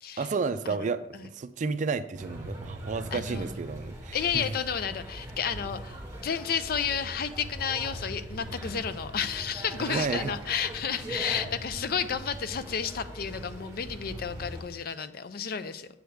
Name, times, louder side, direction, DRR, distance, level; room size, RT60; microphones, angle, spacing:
voice 1, 0.2-4.5 9.8-10.3, right 4 dB, 45° right, 0.4 m, -31 dB
sound 1, 2.1-14.6, right 1 dB, 20° right, 2.0 m, -41 dB
voice 2, 3.1-3.5 4.1-15.9, left 7 dB, 55° left, 0.4 m, -32 dB
7.9 x 3.4 x 6.3 m
head